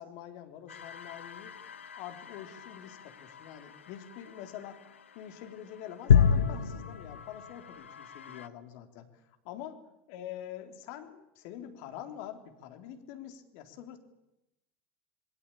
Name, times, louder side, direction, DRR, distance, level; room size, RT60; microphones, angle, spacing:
voice 1, 0.0-1.5 2.0-4.8 5.2-9.1 9.4-9.7 10.1-14.0, left 10 dB, 55° left, 6 dB, 3.6 m, -45 dB
sound 1, 0.7-8.5, left 7 dB, 80° left, 1.2 m, -31 dB
27.0 x 21.5 x 8.9 m, 0.87 s
figure-of-eight pair, 80°, 6 cm